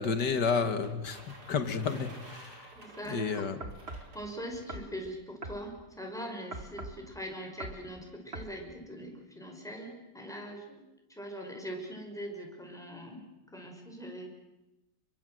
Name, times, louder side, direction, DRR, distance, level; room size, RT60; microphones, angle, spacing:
voice 1, 0.0-2.6 3.1-3.6, left 5 dB, 65° left, 9 dB, 2.5 m, -31 dB
sound 1, 0.7-4.8, right 1 dB, 55° right, 5.3 m, -52 dB
voice 2, 2.7-3.5 4.1-10.8 11.1-13.2 13.5-14.3, equal, ahead, 1 dB, 5.7 m, -42 dB
sound 2, 3.6-4.1 4.7-4.9 5.4-5.6 6.5-7.0 7.6-7.8 8.3-8.5, right 2 dB, 35° right, 2.3 m, -41 dB
29.0 x 24.0 x 7.9 m, 0.95 s
omnidirectional pair, 2.0 m